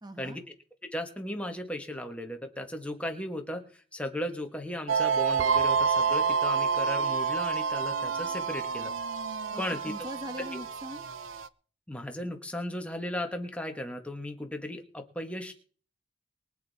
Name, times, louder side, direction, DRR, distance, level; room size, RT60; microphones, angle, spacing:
voice 1, 0.0-0.4 9.5-11.1, right 1 dB, 20° right, 8 dB, 1.2 m, -41 dB
voice 2, 0.9-3.6 3.9-8.9 9.6-9.9 10.4-10.5 11.9-15.6, left 1 dB, 5° left, 4 dB, 1.4 m, -36 dB
sound 1, 4.9-11.5, right 5 dB, 80° right, 0.6 m, -28 dB
23.0 x 8.1 x 4.1 m, 0.43 s
head